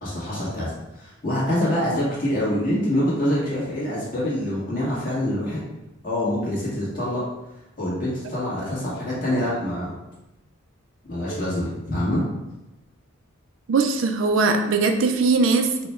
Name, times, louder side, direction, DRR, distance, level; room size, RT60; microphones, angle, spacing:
voice 1, 0.0-5.6 6.0-7.2 7.8-10.0 11.1-12.2, left 1 dB, 45° left, -8 dB, 1.3 m, -25 dB
voice 2, 13.7-15.9, right 4 dB, 75° right, 6 dB, 0.4 m, -20 dB
4.2 x 2.2 x 4.3 m, 0.98 s
head